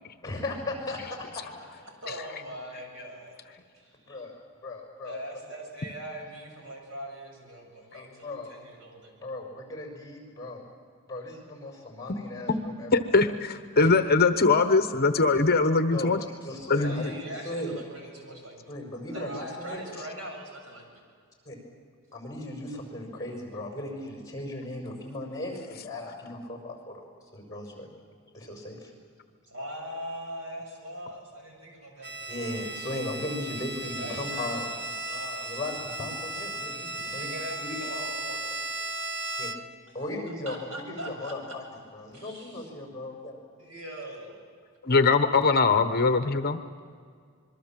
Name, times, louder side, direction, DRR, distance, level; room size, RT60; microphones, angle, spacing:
voice 1, 0.2-1.7 4.1-5.2 7.9-8.6 9.2-10.6 11.1-12.9 13.8-13.9 15.9-16.1 16.4-17.2 17.4-17.7 18.7-19.8 21.4-21.6 22.1-27.9 28.3-28.9 32.3-34.7 35.4-37.3 37.6-37.8 39.4-39.5 39.9-41.6 41.9-43.4, left 1 dB, 15° left, 2 dB, 5.9 m, -37 dB
voice 2, 2.0-3.4 3.7-4.1 5.0-9.1 16.7-18.7 19.1-20.8 29.5-32.5 34.0-35.6 37.0-38.5 40.5-41.3 42.1-42.7 43.6-44.4, equal, 70° right, 1 dB, 7.3 m, -41 dB
voice 3, 12.9-16.2 16.7-17.1 44.8-46.6, left 3 dB, 45° left, 9 dB, 1.0 m, -22 dB
Bowed string instrument, 32.0-39.9, right 2 dB, 55° right, 1.1 m, -36 dB
26.5 x 22.5 x 7.5 m, 2.1 s
head